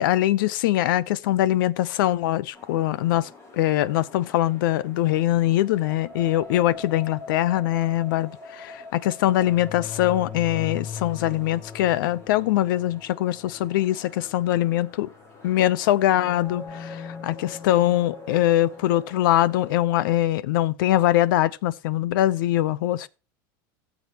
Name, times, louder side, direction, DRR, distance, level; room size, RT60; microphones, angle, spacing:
voice 1, 0.0-15.1 15.4-23.1, left 14 dB, 85° left, 0.7 m, -22 dB
sound 1, 2.5-19.8, left 5 dB, 25° left, 3.4 m, -41 dB
17.0 x 7.3 x 3.0 m
supercardioid pair, 140°, 11 cm